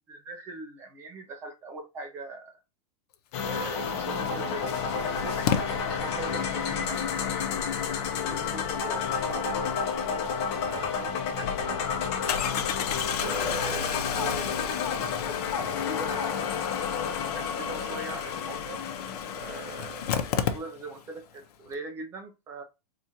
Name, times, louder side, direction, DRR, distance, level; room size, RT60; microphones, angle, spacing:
voice 1, 0.1-2.6 3.4-7.0 8.3-10.3 10.6-12.5 13.1-16.5 17.3-18.8 19.3-22.6, right 3 dB, 15° right, 5 dB, 0.4 m, -41 dB
sound 1, 3.3-20.6, left 6 dB, 45° left, 0.8 m, -31 dB
Engine starting, 4.0-4.1 5.5-5.6 10.7-10.8 11.1-11.2 12.3-21.1 21.4-21.5 21.7-21.8, left 8 dB, 75° left, 0.7 m, -33 dB
4.1 x 2.4 x 2.8 m, 0.26 s
supercardioid pair, 175°, 20 cm